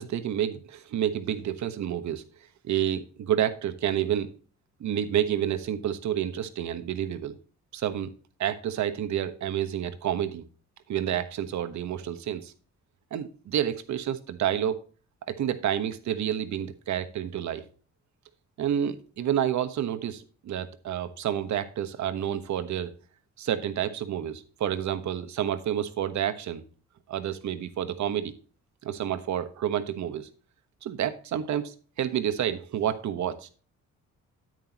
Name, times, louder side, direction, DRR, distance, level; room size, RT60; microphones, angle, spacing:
voice 1, 0.0-2.2 2.6-4.3 4.8-7.3 7.7-8.1 8.4-10.4 10.9-12.5 13.1-14.8 15.3-17.6 18.6-22.9 23.4-26.6 27.1-28.3 28.8-30.3 30.8-33.5, right 10 dB, 70° right, 1.2 m, -29 dB
9.3 x 9.2 x 2.9 m
cardioid pair, 90°, 30 cm